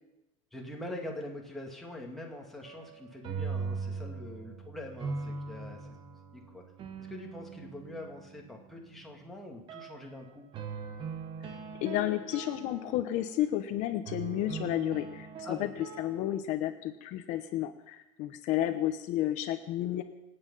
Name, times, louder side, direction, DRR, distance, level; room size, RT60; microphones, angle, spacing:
voice 1, 0.5-5.9 6.3-6.6 7.0-10.5 15.4-15.7, left 1 dB, ahead, -2 dB, 2.2 m, -43 dB
sound 1, 2.6-8.6 9.7-10.0 10.5-13.5 14.1-16.4, right 5 dB, 35° right, 1.2 m, -41 dB
voice 2, 11.8-15.7 16.0-20.0, left 13 dB, 55° left, 8 dB, 0.9 m, -32 dB
26.0 x 8.9 x 5.6 m, 0.93 s
cardioid pair, 170°, 15 cm